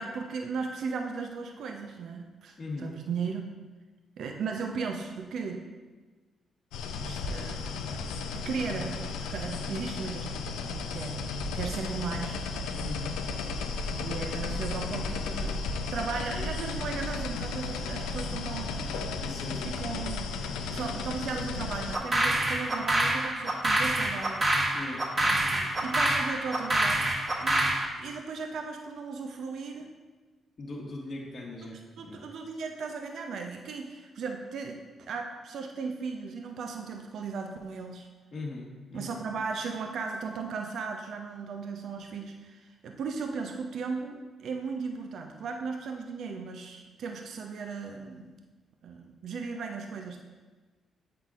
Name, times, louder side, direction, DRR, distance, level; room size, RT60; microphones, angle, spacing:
voice 1, 0.0-3.4 4.2-5.7 7.0-7.7 8.2-10.4 10.7-11.3 11.5-12.4 14.0-15.6 15.9-19.0 19.5-24.5 25.2-27.1 27.4-29.9 32.0-34.8 35.1-38.1 38.9-48.3 48.8-50.2, right 5 dB, 65° right, 3 dB, 0.5 m, -36 dB
voice 2, 2.6-2.9 12.8-13.1 19.2-19.7 24.7-25.0 30.6-32.2 38.3-39.2, left 2 dB, 50° left, -3 dB, 1.2 m, -39 dB
sound 1, 6.7-22.0, left 4 dB, 80° left, 0.4 m, -34 dB
sound 2, 21.9-27.9, right 1 dB, 35° right, 1.2 m, -26 dB
8.0 x 5.7 x 2.4 m, 1.3 s
hypercardioid pair, 45°, 0 cm